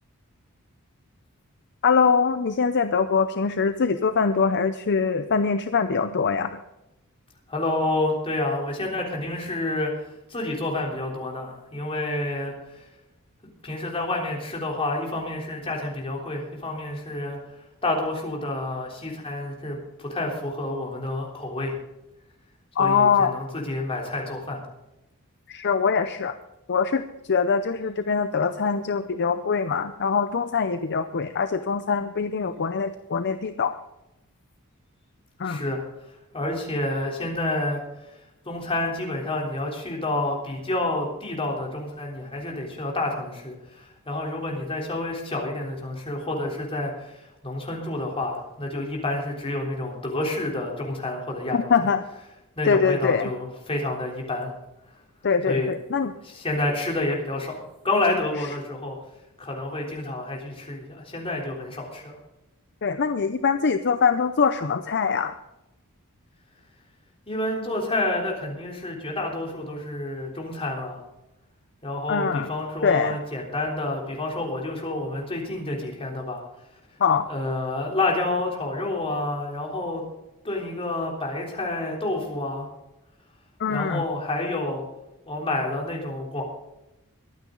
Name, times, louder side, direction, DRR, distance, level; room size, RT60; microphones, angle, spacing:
voice 1, 1.8-6.6 22.8-23.4 25.5-26.3 26.7-27.0 27.3-33.7 35.4-35.6 51.5-52.0 52.7-53.3 55.2-56.1 62.8-65.3 72.1-72.5 72.8-73.2 77.0-77.3 83.6-84.0, left 5 dB, 50° left, 10 dB, 0.6 m, -23 dB
voice 2, 7.5-12.9 13.6-17.4 17.8-21.7 22.8-24.6 35.4-35.8 36.3-38.2 38.5-51.9 52.6-54.5 55.5-55.7 56.2-59.0 59.4-62.2 67.3-71.0 71.8-76.4 77.3-80.0 80.4-82.7 83.7-84.8 85.3-86.4, left 2 dB, 25° left, -1 dB, 3.5 m, -29 dB
22.5 x 9.2 x 3.9 m, 0.92 s
head